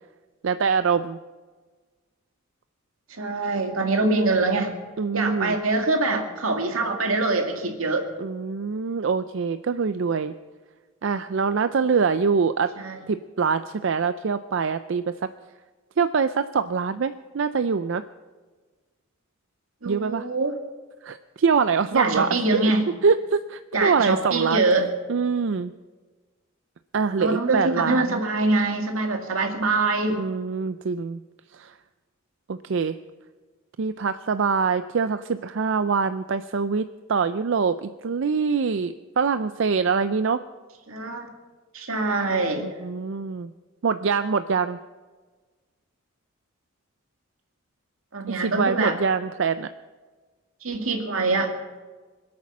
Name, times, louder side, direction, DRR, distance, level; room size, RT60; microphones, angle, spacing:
voice 1, 0.4-1.2 5.0-5.6 8.2-10.3 11.0-12.7 13.1-15.2 16.0-18.0 19.9-20.3 21.0-22.7 23.0-24.6 25.1-25.7 26.9-28.2 30.1-31.2 31.5-31.7 32.5-33.0 33.8-40.4 42.6-43.5 43.8-44.8 48.3-49.7, right 5 dB, 60° right, 12 dB, 0.4 m, -24 dB
voice 2, 3.1-4.8 5.1-8.1 12.8-13.0 19.8-20.6 21.9-22.9 23.7-24.9 27.2-30.2 40.9-41.3 41.7-42.7 48.1-49.0 50.6-51.7, right 3 dB, 85° right, 4 dB, 2.1 m, -24 dB
24.5 x 8.6 x 6.1 m, 1.4 s
head